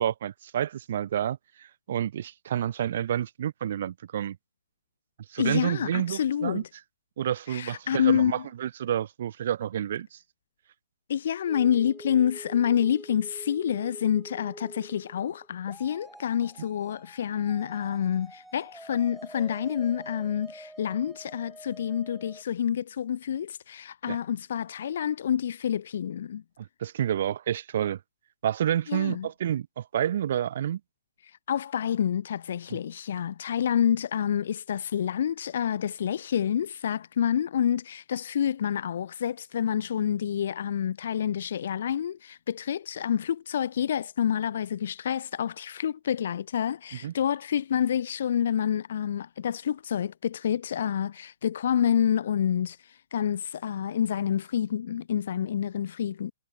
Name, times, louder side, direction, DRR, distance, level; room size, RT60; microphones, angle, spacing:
voice 1, 0.0-4.4 5.3-6.6 7.2-10.2 24.1-24.2 26.6-28.0 28.4-30.8 32.7-32.8 47.0-47.1, right 10 dB, 55° right, 5.9 m, -29 dB
voice 2, 5.4-6.7 7.5-8.4 11.1-26.4 28.9-29.3 31.5-56.3, left 9 dB, 60° left, 1.3 m, -28 dB
sound 1, 11.5-22.4, right 1 dB, ahead, 5.1 m, -46 dB
hypercardioid pair, 135°, 0 cm